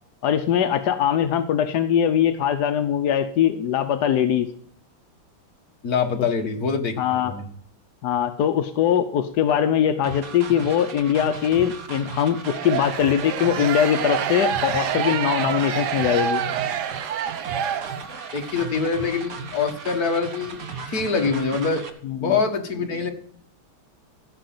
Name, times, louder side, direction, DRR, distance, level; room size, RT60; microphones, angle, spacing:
voice 1, 0.2-4.5 7.0-7.3 8.0-16.4 22.0-22.4, left 9 dB, 65° left, 8 dB, 1.1 m, -21 dB
voice 2, 5.8-7.5 18.1-20.6 20.9-21.9 22.1-23.1, left 5 dB, 45° left, 4 dB, 1.9 m, -25 dB
sound 1, 10.0-21.9, right 4 dB, 45° right, 1.5 m, -36 dB
sound 2, 12.5-18.4, right 9 dB, 65° right, 1.1 m, -27 dB
15.5 x 5.4 x 7.7 m, 0.63 s
omnidirectional pair, 2.4 m